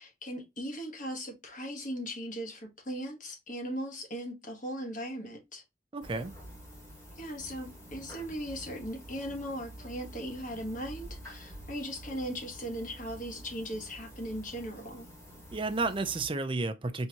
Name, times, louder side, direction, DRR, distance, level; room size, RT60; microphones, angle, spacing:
voice 1, 0.0-5.6 7.2-15.1, equal, 40° left, 1.3 m, -38 dB
voice 2, 5.9-6.4 15.5-17.1, right 3 dB, 25° right, 0.5 m, -32 dB
sound 1, 6.0-16.3, equal, 15° left, 1.7 m, -48 dB
4.4 x 3.5 x 2.8 m
head